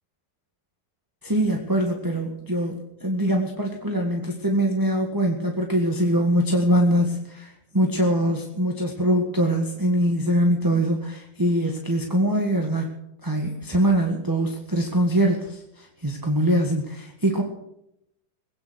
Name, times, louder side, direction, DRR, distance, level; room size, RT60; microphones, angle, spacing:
voice 1, 1.2-12.8 13.2-17.4, right 1 dB, 10° right, 1 dB, 1.6 m, -23 dB
20.5 x 9.5 x 6.4 m, 0.82 s
omnidirectional pair, 1.9 m